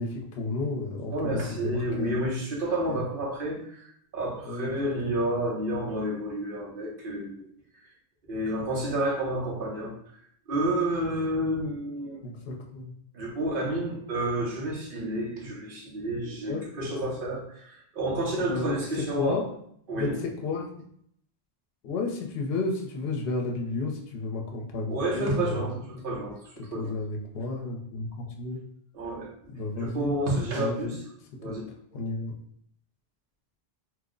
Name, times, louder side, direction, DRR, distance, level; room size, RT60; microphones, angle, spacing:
voice 1, 0.0-2.2 2.9-3.0 4.4-4.7 5.0-5.3 12.2-12.9 16.4-16.6 18.5-18.8 19.2-19.4 19.9-20.7 21.8-26.2 26.7-28.6 29.5-30.2 30.6-30.9 31.4-31.5 31.9-32.3, left 3 dB, 70° left, 1 dB, 0.8 m, -32 dB
voice 2, 1.1-7.5 8.3-10.0 10.5-12.2 13.1-19.4 19.9-20.2 24.9-26.9 28.9-31.0 31.4-32.0, right 1 dB, 60° right, -2 dB, 1.0 m, -30 dB
3.0 x 2.0 x 3.7 m, 0.68 s
omnidirectional pair, 1.1 m